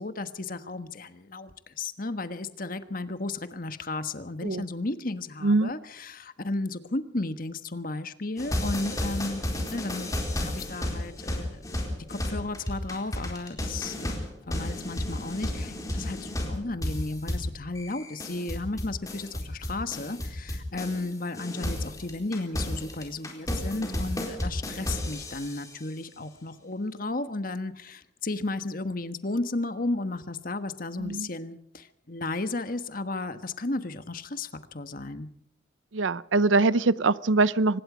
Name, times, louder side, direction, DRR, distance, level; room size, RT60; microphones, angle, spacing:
voice 1, 0.0-11.6 12.1-35.3, left 2 dB, 45° left, 10 dB, 1.4 m, -34 dB
sound 1, 8.4-21.1 21.3-25.7, left 1 dB, 20° left, 4.2 m, -33 dB
voice 2, 31.0-31.3 35.9-37.8, right 3 dB, 90° right, 18 dB, 0.7 m, -23 dB
24.5 x 20.5 x 5.1 m, 0.72 s
head